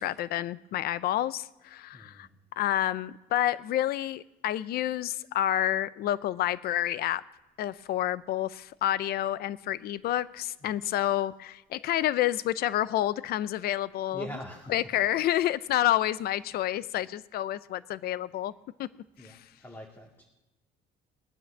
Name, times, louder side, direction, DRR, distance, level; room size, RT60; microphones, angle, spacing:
voice 1, 0.0-2.3 2.6-7.2 7.6-14.3 14.7-18.5 18.8-18.9, left 13 dB, 65° left, 17 dB, 0.6 m, -29 dB
voice 2, 1.9-2.3 10.6-11.1 14.1-15.0 19.2-20.2, equal, 15° left, -1 dB, 2.2 m, -44 dB
19.5 x 9.3 x 7.2 m, 1.0 s
cardioid pair, 110°, 17 cm